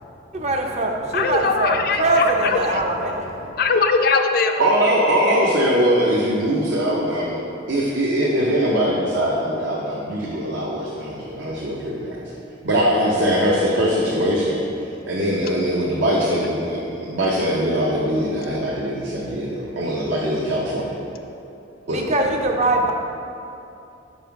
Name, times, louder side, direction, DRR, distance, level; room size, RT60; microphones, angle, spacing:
voice 1, 0.3-3.5 21.9-22.9, right 2 dB, 35° right, 2 dB, 0.5 m, -22 dB
voice 2, 1.1-2.8 3.6-4.7 18.5-18.6, left 4 dB, 50° left, 6 dB, 0.4 m, -21 dB
voice 3, 4.6-7.4 7.7-12.2 12.6-14.6 15.1-20.9 21.9-22.1, equal, 70° right, -5 dB, 0.7 m, -21 dB
5.5 x 5.1 x 4.7 m, 2.8 s
head